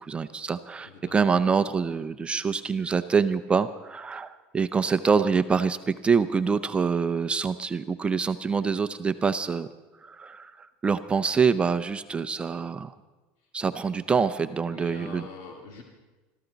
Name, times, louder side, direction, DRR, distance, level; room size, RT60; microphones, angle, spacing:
voice 1, 0.0-9.7 10.0-12.9 13.5-15.3, right 5 dB, 20° right, 11 dB, 0.6 m, -25 dB
voice 2, 0.8-1.2 14.7-15.8, left 4 dB, 65° left, 1 dB, 2.2 m, -43 dB
21.5 x 13.5 x 4.0 m, 1.2 s
supercardioid pair, 120°, 6 cm